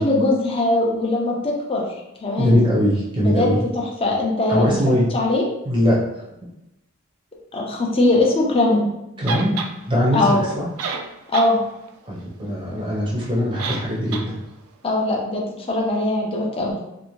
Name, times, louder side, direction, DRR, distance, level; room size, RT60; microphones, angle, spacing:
voice 1, 0.0-1.9 2.2-2.7 3.2-4.7 5.1-5.4 7.5-8.8 10.1-10.5 11.3-11.6 14.8-16.8, left 2 dB, 25° left, -2 dB, 0.5 m, -21 dB
voice 2, 2.4-3.6 4.5-5.1 5.7-6.0 9.2-9.6 9.9-10.7 12.1-14.3, equal, 25° right, -5 dB, 0.5 m, -21 dB
sound 1, 9.3-9.7 10.5-10.6 10.8-11.5 11.9-12.0 13.6-13.9 14.1-14.3, right 4 dB, 90° right, 0.3 m, -28 dB
2.6 x 2.1 x 3.0 m, 0.91 s
head